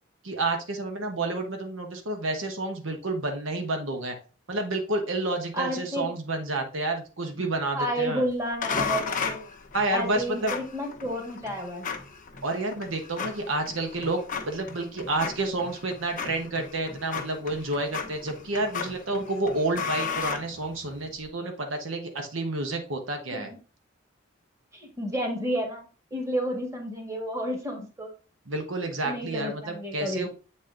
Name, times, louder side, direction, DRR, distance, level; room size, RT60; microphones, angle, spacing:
voice 1, 0.2-4.2 4.5-8.2 9.7-10.5 12.4-23.5 28.5-30.3, right 2 dB, 80° right, 4 dB, 1.2 m, -30 dB
voice 2, 5.5-6.1 7.7-9.4 9.9-11.9 23.3-23.4 24.7-25.9 26.1-28.1 29.1-30.3, equal, 15° right, 1 dB, 1.7 m, -31 dB
sound 1, 8.6-21.1, left 5 dB, 40° left, 0.9 m, -35 dB
7.6 x 4.1 x 3.8 m, 0.35 s
head